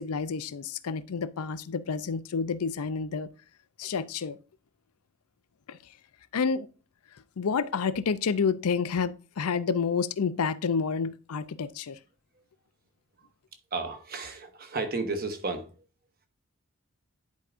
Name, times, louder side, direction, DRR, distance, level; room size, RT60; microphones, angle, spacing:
voice 1, 0.0-3.3 3.8-4.4 5.7-5.8 6.3-6.7 7.4-12.0, left 5 dB, 85° left, 0.5 m, -29 dB
voice 2, 13.7-15.7, right 3 dB, 45° right, 1.2 m, -33 dB
10.5 x 4.8 x 2.5 m
head